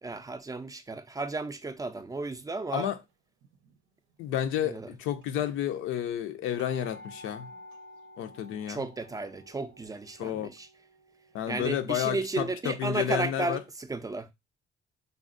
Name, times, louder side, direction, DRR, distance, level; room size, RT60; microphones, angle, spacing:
voice 1, 0.0-2.9 4.6-4.9 8.7-10.7 11.5-14.3, right 3 dB, 20° right, 0.3 m, -34 dB
sound 1, 3.4-3.8 4.6-4.7 4.9-5.0 5.2-12.8 13.3-13.4, left 1 dB, 85° right, 0.6 m, -52 dB
voice 2, 4.2-7.5 8.2-8.8 10.2-10.5 11.3-13.6, left 10 dB, 90° left, 0.5 m, -31 dB
3.5 x 2.0 x 2.5 m
cardioid pair, 90°, 20 cm